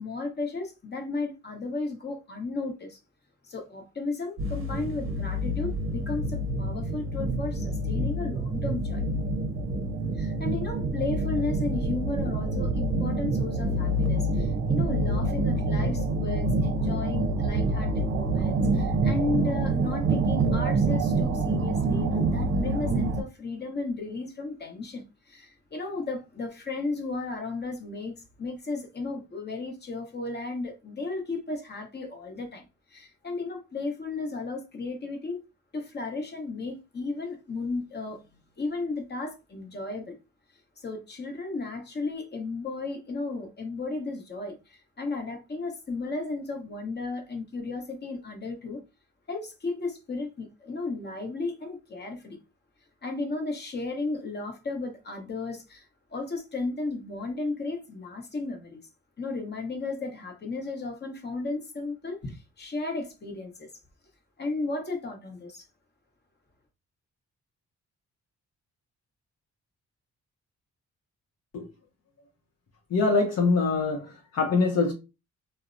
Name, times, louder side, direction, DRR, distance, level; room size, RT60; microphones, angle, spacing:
voice 1, 0.0-3.0 3.5-9.0 10.2-32.6 32.9-35.4 35.7-38.2 38.6-40.2 40.8-48.8 49.3-52.4 53.0-58.8 59.2-63.7 64.4-65.6, left 3 dB, 35° left, 0.9 m, -34 dB
sound 1, 4.4-23.2, right 2 dB, 45° right, 0.6 m, -27 dB
voice 2, 72.9-74.9, left 4 dB, 60° left, 0.6 m, -24 dB
2.7 x 2.0 x 2.5 m
cardioid pair, 85°, 30 cm